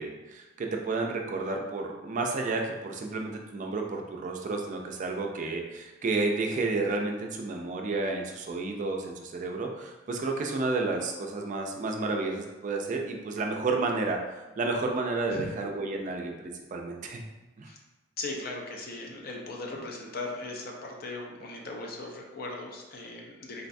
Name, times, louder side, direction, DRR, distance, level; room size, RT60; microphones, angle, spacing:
voice 1, 0.0-17.2 17.6-17.7, right 3 dB, 40° right, 1 dB, 0.3 m, -31 dB
voice 2, 18.2-23.7, left 2 dB, 50° left, 0 dB, 0.5 m, -38 dB
3.8 x 2.2 x 2.5 m, 1.1 s
head